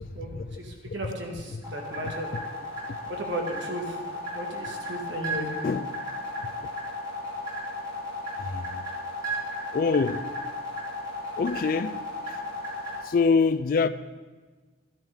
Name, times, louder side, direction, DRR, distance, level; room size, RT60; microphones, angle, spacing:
voice 1, 0.1-2.3 3.1-4.0 4.3-5.6, right 1 dB, 80° right, 1.8 m, -35 dB
sound 1, 1.6-13.0, left 1 dB, 20° right, 3.7 m, -35 dB
voice 2, 8.4-8.8 9.7-10.3 11.4-12.4 13.0-13.9, left 4 dB, 50° left, 0.3 m, -26 dB
12.5 x 10.5 x 3.5 m
head